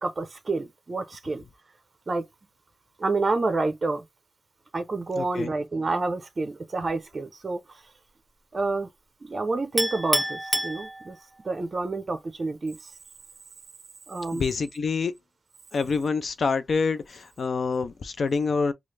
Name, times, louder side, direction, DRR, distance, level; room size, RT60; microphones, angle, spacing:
voice 1, 0.0-1.4 2.1-2.3 3.0-4.0 4.7-7.8 8.5-8.9 9.2-11.2 11.4-12.8 14.1-14.5, right 3 dB, 45° right, 0.5 m, -28 dB
voice 2, 5.2-5.5 14.3-15.1 15.7-18.7, left 4 dB, 70° left, 0.4 m, -26 dB
Chink clink, 9.8-11.4, right 1 dB, 15° right, 0.8 m, -28 dB
3.1 x 2.3 x 3.2 m
wide cardioid pair, 95°, 0 cm